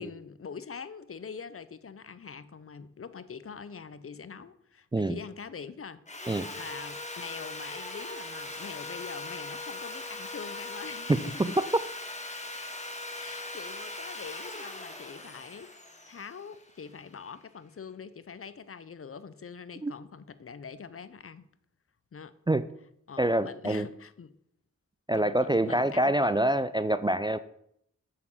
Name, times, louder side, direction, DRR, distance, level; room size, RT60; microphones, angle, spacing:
voice 1, 0.0-11.5 13.2-15.7 16.1-21.5 22.1-22.4 23.1-24.4 25.1-26.4, left 6 dB, 45° left, 0.5 m, -44 dB
Sawing, 6.1-17.1, left 2 dB, 25° left, 1.3 m, -40 dB
voice 2, 11.1-11.6 19.8-19.9 22.5-22.7 23.2-23.9 25.1-27.4, right 1 dB, 15° right, 0.3 m, -26 dB
7.2 x 6.6 x 4.2 m
cardioid pair, 45°, 30 cm